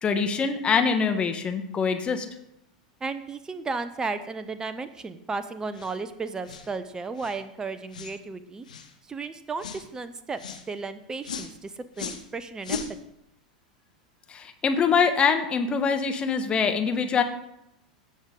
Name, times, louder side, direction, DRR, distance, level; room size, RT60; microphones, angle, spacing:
voice 1, 0.0-2.2 14.3-17.2, left 6 dB, 25° left, 6 dB, 1.4 m, -24 dB
voice 2, 3.0-8.6 9.1-10.4 10.7-12.8, right 4 dB, 15° right, 12 dB, 0.8 m, -34 dB
sound 1, 5.7-6.0 6.4-6.7 7.2-7.4 7.9-8.2 8.6-8.9 9.6-9.8 10.4-10.6 11.2-11.5 11.9-12.3 12.6-12.9, left 5 dB, 80° left, 1.1 m, -36 dB
16.5 x 6.4 x 3.9 m, 0.80 s
hypercardioid pair, 90°, 4 cm